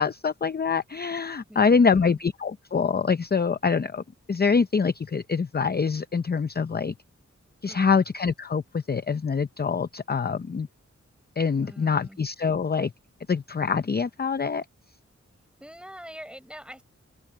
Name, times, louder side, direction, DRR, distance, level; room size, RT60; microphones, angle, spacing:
voice 1, 0.0-4.0 4.3-6.9 7.6-10.7 11.4-12.9 13.3-14.6, left 5 dB, 35° left, 0.5 m, -25 dB
voice 2, 1.5-2.2 7.6-8.0 11.6-12.2 15.6-16.8, equal, 5° right, 7.3 m, -44 dB
wide cardioid pair, 100°, 29 cm